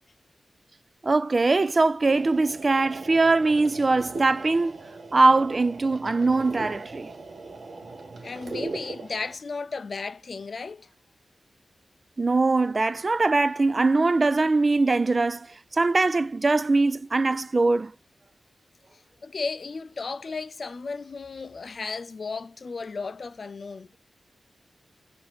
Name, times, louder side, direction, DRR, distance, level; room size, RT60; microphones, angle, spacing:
voice 1, 1.0-4.8 5.1-7.1 12.2-15.5 15.7-17.9, right 3 dB, 45° right, 0.4 m, -22 dB
sound 1, 2.0-9.4, right 3 dB, 65° right, 1.0 m, -39 dB
voice 2, 8.2-10.9 19.2-23.9, left 4 dB, 65° left, 0.4 m, -34 dB
4.1 x 2.7 x 4.3 m
cardioid pair, 40°, 0 cm